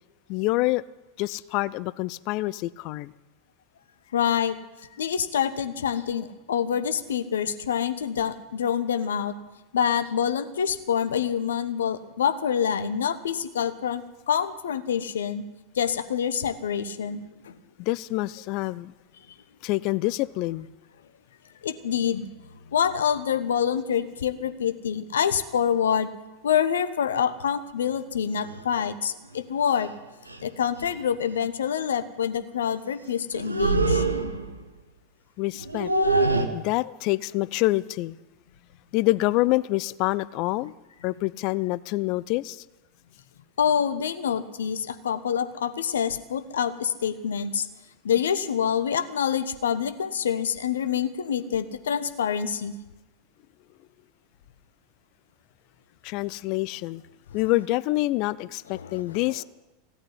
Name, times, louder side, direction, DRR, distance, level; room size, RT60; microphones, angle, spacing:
voice 1, 0.3-0.8 1.2-3.1 17.8-18.9 19.6-20.7 35.4-35.9 36.5-38.2 38.9-40.7 41.0-42.6 56.0-57.0 57.3-59.4, left 19 dB, 50° left, 0.5 m, -26 dB
voice 2, 4.1-4.6 5.0-9.3 9.7-15.4 15.7-17.6 21.6-22.3 22.7-26.1 26.4-29.9 30.4-34.0 43.6-47.7 48.0-52.7 58.7-59.0, left 8 dB, 70° left, 1.1 m, -26 dB
sound 1, 28.4-28.6 29.8-29.9 30.3-30.4 30.8-31.0 33.3-34.6 35.5-36.5, right 2 dB, 90° right, 1.3 m, -24 dB
16.5 x 8.8 x 9.8 m
figure-of-eight pair, 85°, 0 cm